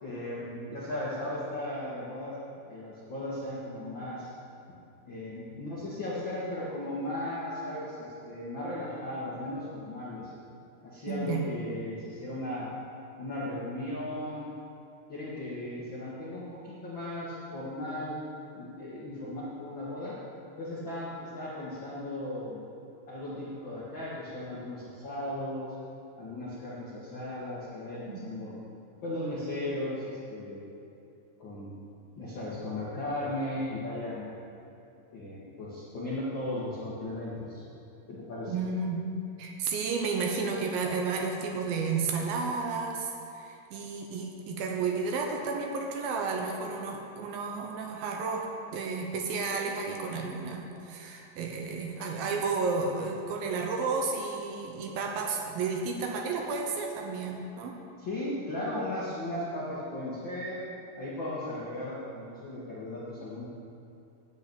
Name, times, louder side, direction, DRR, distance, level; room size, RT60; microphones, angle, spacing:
voice 1, 0.0-2.4 2.7-4.3 5.0-10.3 10.8-12.7 13.2-14.5 15.1-18.2 18.5-20.2 20.6-22.6 23.1-25.7 26.2-28.5 29.0-30.7 31.4-31.7 32.2-34.3 35.1-37.6 38.1-38.5 58.0-60.6 61.0-63.4, left 1 dB, 70° left, -8 dB, 1.1 m, -36 dB
voice 2, 11.1-11.4 28.1-28.2 38.5-39.1 39.4-48.5 48.7-57.8, right 4 dB, 75° right, 1 dB, 2.3 m, -32 dB
10.5 x 6.6 x 8.4 m, 2.7 s
omnidirectional pair, 5.1 m